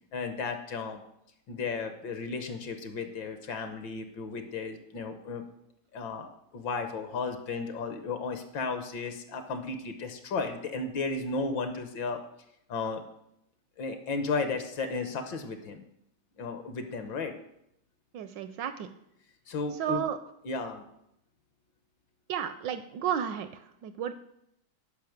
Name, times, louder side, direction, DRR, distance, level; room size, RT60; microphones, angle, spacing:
voice 1, 0.1-1.0 1.5-5.4 5.9-6.3 6.5-12.2 12.7-13.0 13.8-15.8 16.4-17.3 19.5-20.0 20.4-20.8, left 4 dB, 65° left, 7 dB, 1.5 m, -34 dB
voice 2, 18.1-18.9 19.8-20.2 22.3-24.1, right 9 dB, 75° right, 11 dB, 1.1 m, -33 dB
10.5 x 5.4 x 6.5 m, 0.79 s
omnidirectional pair, 2.3 m